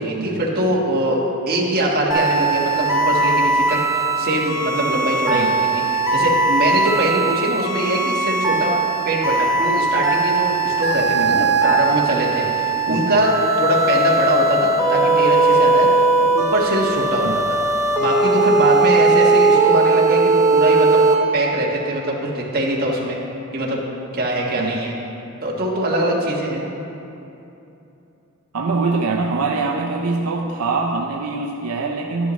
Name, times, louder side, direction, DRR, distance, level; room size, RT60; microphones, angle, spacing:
voice 1, 0.0-8.7 9.0-17.6 17.9-21.0 21.3-23.2 23.5-23.8 24.1-24.9 25.4-26.7, right 1 dB, 45° right, -3 dB, 1.5 m, -22 dB
sound 1, 2.1-21.2, right 3 dB, 15° right, 1.0 m, -18 dB
voice 2, 12.9-13.2 17.2-17.4 24.5-24.8 28.5-32.3, right 3 dB, 80° right, 1 dB, 0.6 m, -24 dB
11.0 x 10.5 x 3.1 m, 2.8 s
head